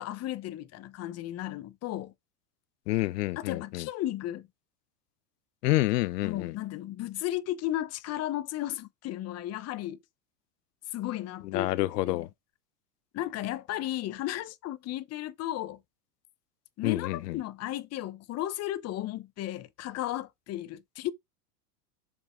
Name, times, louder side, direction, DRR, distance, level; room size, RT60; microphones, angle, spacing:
voice 1, 0.0-2.1 3.4-4.5 6.2-10.0 10.9-12.3 13.1-15.8 16.8-21.1, left 14 dB, 30° left, 0.9 m, -34 dB
voice 2, 2.9-3.9 5.6-6.5 11.5-12.3 16.8-17.3, left 17 dB, 80° left, 0.8 m, -28 dB
7.0 x 5.4 x 3.8 m
supercardioid pair, 125°, 47 cm